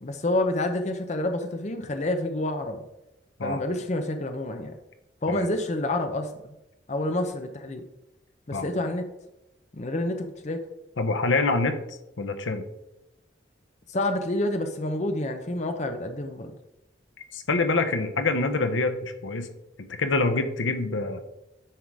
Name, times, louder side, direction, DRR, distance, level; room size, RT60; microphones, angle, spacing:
voice 1, 0.0-2.8 3.4-4.7 5.2-6.6 6.9-7.8 8.5-9.1 9.7-10.6 13.9-16.5, left 1 dB, 35° left, 6 dB, 0.7 m, -28 dB
voice 2, 11.0-12.6 17.3-19.5 20.0-21.2, left 3 dB, 85° left, 8 dB, 0.8 m, -26 dB
10.0 x 3.7 x 4.7 m, 0.90 s
head